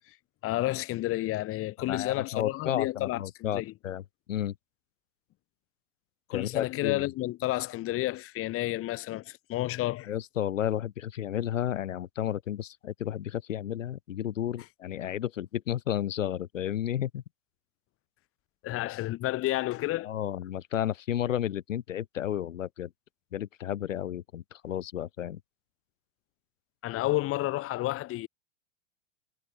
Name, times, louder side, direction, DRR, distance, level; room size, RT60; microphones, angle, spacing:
voice 1, 0.4-3.7 6.3-10.1 18.6-20.1 26.8-28.3, left 17 dB, 35° left, 1.7 m, -31 dB
voice 2, 1.8-4.0 4.3-4.5 6.3-7.1 10.0-17.2 20.0-22.9 23.3-25.4, left 11 dB, 85° left, 1.3 m, -32 dB
hypercardioid pair, 110°, 37 cm